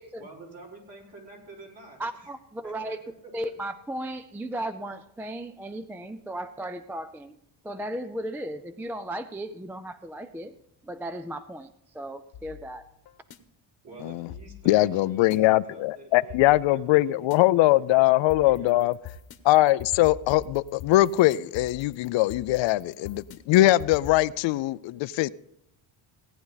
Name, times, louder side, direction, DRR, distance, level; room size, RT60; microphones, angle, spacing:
voice 1, 0.2-2.3 2.6-3.0 3.2-3.5 13.8-17.9 18.4-18.9, right 2 dB, 55° right, 4.6 m, -48 dB
voice 2, 2.0-3.0 3.3-7.4 7.6-10.5 10.8-12.9, right 1 dB, 5° right, 0.3 m, -36 dB
sound 1, 12.3-13.4 14.3-15.4 16.3-17.4 18.3-24.2, left 8 dB, 55° left, 1.2 m, -43 dB
voice 3, 14.7-18.9 19.4-25.3, left 16 dB, 75° left, 0.5 m, -21 dB
17.0 x 9.9 x 4.0 m
cardioid pair, 140°, 46 cm